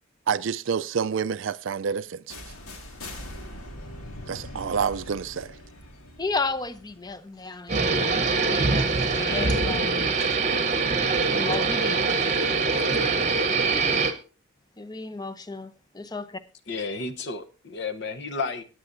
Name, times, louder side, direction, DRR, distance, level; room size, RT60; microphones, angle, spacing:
voice 1, 0.3-2.4 4.3-5.6, right 6 dB, 60° right, 0.4 m, -28 dB
sound 1, 2.3-8.1, left 1 dB, 80° left, 1.9 m, -42 dB
voice 2, 6.2-10.2 11.3-12.0 14.8-16.4, left 3 dB, 20° left, 0.6 m, -33 dB
sound 2, 7.7-14.1, right 4 dB, 30° right, 0.9 m, -23 dB
voice 3, 16.7-18.6, left 4 dB, 55° left, 0.9 m, -32 dB
18.0 x 8.8 x 2.6 m
head